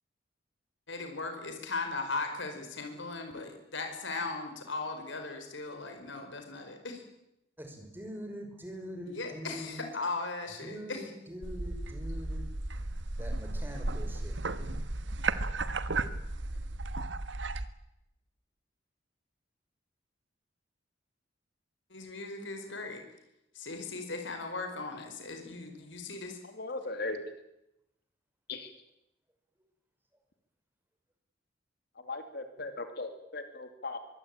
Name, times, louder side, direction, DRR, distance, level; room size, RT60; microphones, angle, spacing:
voice 1, 0.9-7.0 9.1-11.1 21.9-23.0 23.5-26.4, left 3 dB, 85° left, 5 dB, 4.7 m, -38 dB
voice 2, 7.6-9.8 10.6-12.5 13.2-14.4, equal, 10° right, 5 dB, 5.6 m, -43 dB
sound 1, 11.4-17.7, right 2 dB, 80° right, 1.5 m, -34 dB
voice 3, 26.6-27.2 28.5-28.7 32.1-34.0, left 3 dB, 60° left, 7 dB, 2.8 m, -38 dB
24.0 x 23.0 x 8.9 m, 0.85 s
head